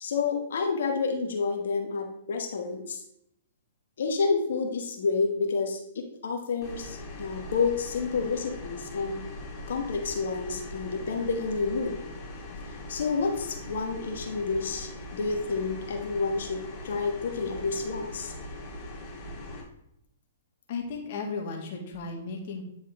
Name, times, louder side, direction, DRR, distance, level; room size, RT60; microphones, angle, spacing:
voice 1, 0.0-3.0 4.0-9.2 9.7-12.0 12.9-18.3, left 4 dB, 70° left, 3 dB, 1.2 m, -29 dB
sound 1, 6.6-19.6, left 2 dB, 15° left, 2.0 m, -41 dB
voice 2, 20.7-22.6, left 4 dB, 55° left, 1 dB, 1.7 m, -35 dB
9.6 x 4.2 x 3.6 m, 0.78 s
hypercardioid pair, 125°, 0 cm